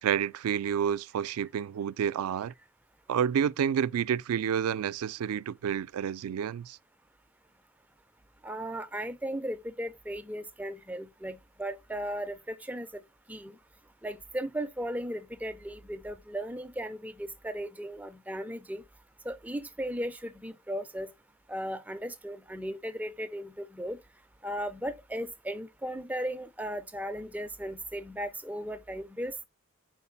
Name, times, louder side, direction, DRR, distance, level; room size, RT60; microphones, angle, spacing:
voice 1, 0.0-2.5 3.1-6.8, right 8 dB, 85° right, 0.3 m, -29 dB
voice 2, 8.4-13.0 13.3-13.5 14.0-18.8 19.2-21.1 21.5-24.0 24.4-29.5, equal, 5° right, 0.3 m, -36 dB
4.6 x 3.8 x 5.7 m
head